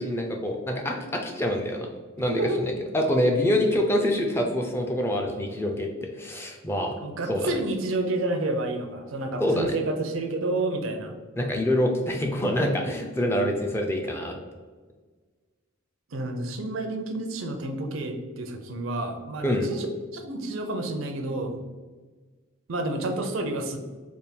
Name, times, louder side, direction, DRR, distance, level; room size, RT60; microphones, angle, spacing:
voice 1, 0.0-1.9 2.2-5.9 6.2-6.9 7.3-7.5 9.4-9.7 11.4-14.3 19.4-19.7, left 1 dB, 10° left, 2 dB, 0.4 m, -26 dB
voice 2, 7.0-11.1 16.1-19.9 20.1-21.6 22.7-23.8, right 2 dB, 75° right, 5 dB, 0.5 m, -29 dB
3.4 x 2.2 x 4.2 m, 1.4 s
head